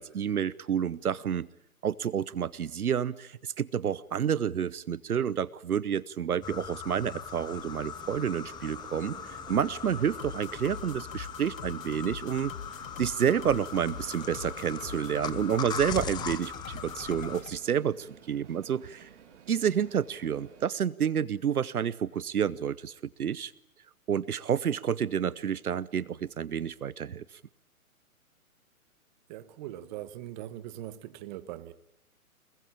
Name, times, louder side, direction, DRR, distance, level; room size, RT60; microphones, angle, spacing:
voice 1, 0.0-1.5 1.8-12.5 13.0-19.1 19.5-23.5 24.1-27.2, right 8 dB, 80° right, 1.0 m, -29 dB
sound 1, 6.4-17.4, left 8 dB, 10° left, 0.9 m, -40 dB
sound 2, 7.3-20.7, right 8 dB, 55° right, 3.6 m, -52 dB
sound 3, 10.2-17.6, left 8 dB, 65° left, 1.2 m, -44 dB
voice 2, 29.3-31.7, right 13 dB, 30° right, 1.4 m, -41 dB
26.0 x 20.5 x 8.8 m
hypercardioid pair, 135°, 44 cm